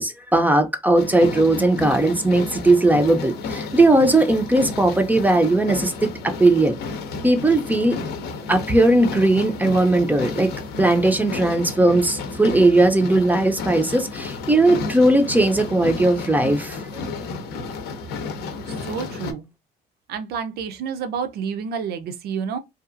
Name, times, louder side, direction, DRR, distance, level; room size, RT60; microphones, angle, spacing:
voice 1, 0.0-6.7 7.2-8.0 8.5-10.5 10.8-17.0, right 2 dB, 10° right, 0.4 m, -18 dB
sound 1, 1.0-19.3, left 4 dB, 75° left, 0.6 m, -32 dB
voice 2, 18.7-19.5 20.1-22.6, right 6 dB, 70° right, 0.6 m, -29 dB
2.7 x 2.3 x 2.5 m
cardioid pair, 110°, 17 cm